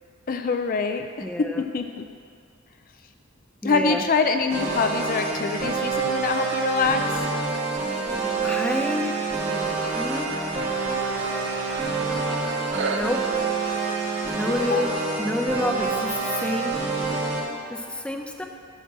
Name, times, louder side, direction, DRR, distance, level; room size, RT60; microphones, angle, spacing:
voice 1, 0.3-1.1 1.4-2.0 3.6-7.0 14.5-14.9, left 4 dB, 45° left, 7 dB, 0.4 m, -24 dB
voice 2, 1.2-1.6 3.6-4.0 8.4-9.2 9.9-10.4 12.7-13.2 14.3-14.9 15.2-16.1 16.4-16.7 17.7-18.4, left 1 dB, 5° left, 2 dB, 0.6 m, -28 dB
sound 1, 4.5-17.4, right 4 dB, 35° right, 2.5 m, -27 dB
sound 2, 9.8-16.3, right 4 dB, 60° right, 0.6 m, -36 dB
12.0 x 4.5 x 7.4 m, 2.3 s
head